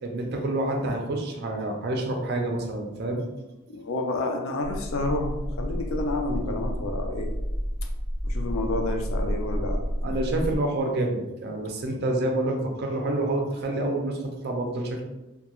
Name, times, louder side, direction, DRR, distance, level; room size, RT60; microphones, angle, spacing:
voice 1, 0.0-3.2 10.0-15.0, right 2 dB, 50° right, 2 dB, 0.4 m, -28 dB
voice 2, 3.7-7.3 8.2-9.8, left 2 dB, 75° left, 3 dB, 0.4 m, -29 dB
sound 1, 4.6-10.6, equal, 25° left, 1.3 m, -30 dB
2.3 x 2.2 x 2.9 m, 1.0 s
head